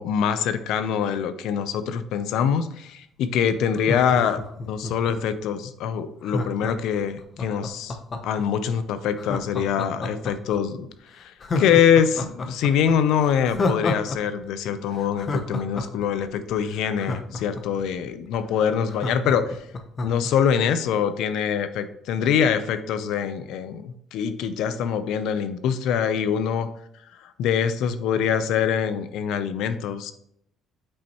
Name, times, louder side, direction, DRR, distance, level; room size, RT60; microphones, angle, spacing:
voice 1, 0.0-4.4 4.7-8.0 8.2-10.9 11.1-19.6 20.0-26.7 27.2-30.1, left 8 dB, 75° left, 12 dB, 0.6 m, -24 dB
Laughter, 3.7-5.4 6.2-8.4 9.2-10.6 10.9-11.0 11.4-14.2 14.4-14.5 14.9-17.8 18.3-18.4 18.6-20.3 20.7-20.8, left 3 dB, 35° left, 0.8 m, -29 dB
8.2 x 5.5 x 3.0 m, 0.72 s
cardioid pair, 130°, 0 cm